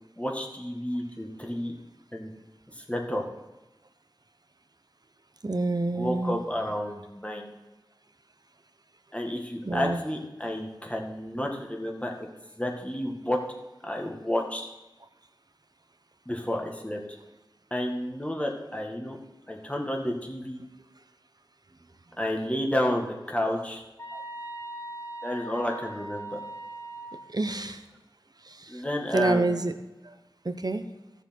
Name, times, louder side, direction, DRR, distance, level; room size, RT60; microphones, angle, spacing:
voice 1, 0.2-1.7 2.1-2.3 2.8-3.2 6.0-7.5 9.1-12.3 12.6-13.4 13.8-14.7 16.3-17.0 17.7-19.2 19.5-20.6 22.2-23.8 25.2-26.4 28.7-29.5, left 1 dB, 15° left, 1 dB, 1.8 m, -31 dB
voice 2, 5.4-6.4 9.6-10.0 10.4-10.5 24.1-24.2 27.3-27.8 28.4-28.8 29.1-29.7 30.0-30.1 30.4-30.9, right 2 dB, 50° right, 9 dB, 0.9 m, -28 dB
sound 1, 24.0-27.3, right 2 dB, 35° left, 1.9 m, -39 dB
14.5 x 7.0 x 4.4 m, 1.1 s
wide cardioid pair, 55°, 9 cm